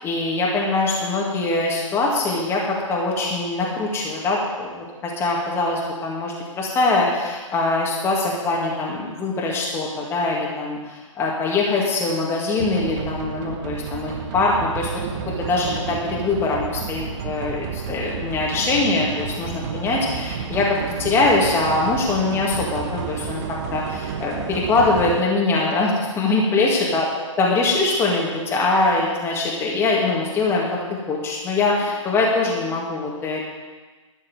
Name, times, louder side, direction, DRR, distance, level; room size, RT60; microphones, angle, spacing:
voice 1, 0.0-14.9 15.3-23.4 23.7-33.4, left 3 dB, 15° left, -3 dB, 2.1 m, -23 dB
sound 1, 12.6-25.2, right 6 dB, 35° right, 1.1 m, -31 dB
12.5 x 6.4 x 8.0 m, 1.3 s
figure-of-eight pair, 130°, 17 cm